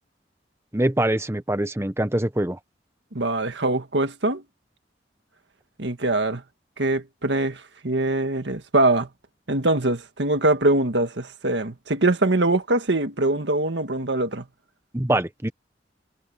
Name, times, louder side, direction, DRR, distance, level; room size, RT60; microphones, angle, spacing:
voice 1, 0.7-2.6 14.9-15.5, right 1 dB, 15° right, 1.0 m, -24 dB
voice 2, 3.1-4.4 5.8-6.4 6.8-9.1 9.5-14.5, right 2 dB, 85° right, 1.7 m, -23 dB
head